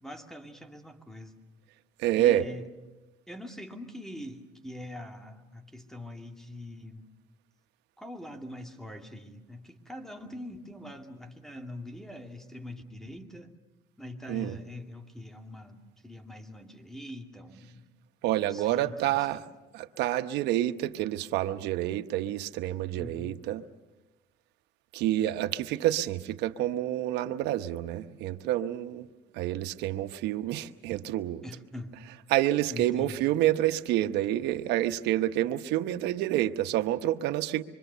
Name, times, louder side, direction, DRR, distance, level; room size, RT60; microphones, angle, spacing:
voice 1, 0.0-1.3 2.2-2.7 3.3-7.1 8.0-13.5 14.0-17.9 18.5-19.5 23.0-23.4 31.4-32.0 32.7-33.2, left 1 dB, ahead, 5 dB, 2.3 m, -43 dB
voice 2, 2.0-2.5 14.3-14.5 18.2-19.4 19.7-23.6 24.9-29.1 29.3-31.4 32.3-37.6, right 13 dB, 90° right, 9 dB, 1.0 m, -28 dB
26.0 x 24.5 x 6.8 m, 1.1 s
cardioid pair, 110°, 17 cm